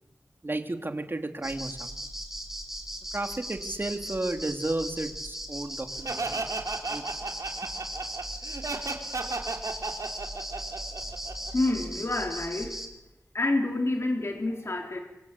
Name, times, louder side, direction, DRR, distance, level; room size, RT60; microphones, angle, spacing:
voice 1, 0.4-1.9 3.1-6.4 6.9-7.0, right 2 dB, 40° right, 6 dB, 3.2 m, -33 dB
sound 1, 1.4-12.9, equal, 5° right, 4.8 m, -38 dB
Laughter, 6.0-11.7, right 3 dB, 85° right, 3.5 m, -34 dB
voice 2, 11.5-12.8 13.3-15.0, left 2 dB, 55° left, 2 dB, 3.9 m, -28 dB
27.0 x 25.0 x 8.5 m, 0.98 s
wide cardioid pair, 70°, 5 cm